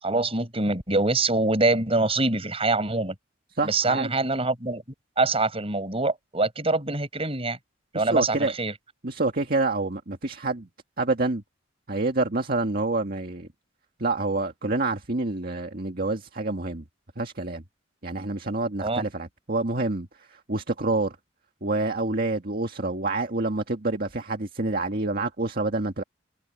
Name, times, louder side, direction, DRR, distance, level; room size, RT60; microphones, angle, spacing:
voice 1, 0.0-3.1 3.6-4.8 5.2-7.6 7.9-8.7 18.8-19.1, right 2 dB, 30° right, 7.3 m, -24 dB
voice 2, 3.6-4.1 7.9-8.5 9.0-10.7 11.0-11.4 11.9-13.5 14.0-16.8 17.2-17.6 18.0-21.2 21.6-26.0, right 2 dB, 50° right, 1.8 m, -27 dB
head